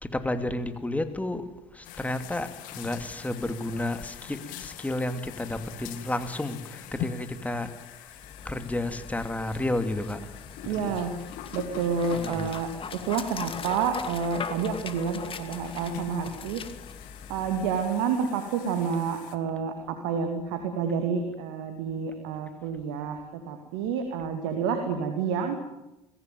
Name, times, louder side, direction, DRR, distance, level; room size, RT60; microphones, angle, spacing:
voice 1, 0.0-1.5 1.7-10.4 10.6-11.0 12.1-12.6, left 1 dB, 10° left, 8 dB, 2.7 m, -32 dB
sound 1, 1.8-19.4, left 12 dB, 70° left, 2.0 m, -44 dB
Dog, 8.1-18.1, left 6 dB, 40° left, 2.4 m, -41 dB
voice 2, 10.6-11.1 11.5-12.7 13.1-16.6 17.3-25.6, right 6 dB, 75° right, 5 dB, 2.5 m, -29 dB
22.5 x 16.0 x 9.3 m, 0.92 s
hypercardioid pair, 65°, 14 cm